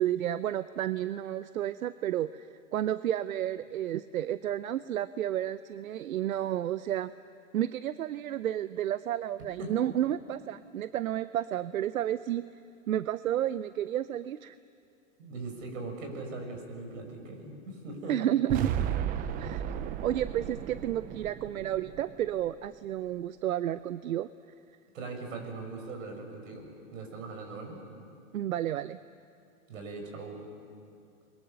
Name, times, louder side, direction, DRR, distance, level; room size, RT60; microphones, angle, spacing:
voice 1, 0.0-2.5 2.7-7.1 7.5-12.4 12.9-14.5 18.1-18.7 19.4-19.6 20.0-24.3 28.3-29.0, right 11 dB, 90° right, 14 dB, 0.7 m, -31 dB
voice 2, 15.2-18.2 24.9-27.8 29.7-30.4, right 3 dB, 70° right, 3 dB, 6.5 m, -40 dB
sound 1, 18.5-22.6, right 9 dB, 20° right, 0.6 m, -34 dB
29.5 x 22.5 x 6.9 m, 2.5 s
hypercardioid pair, 140°, 41 cm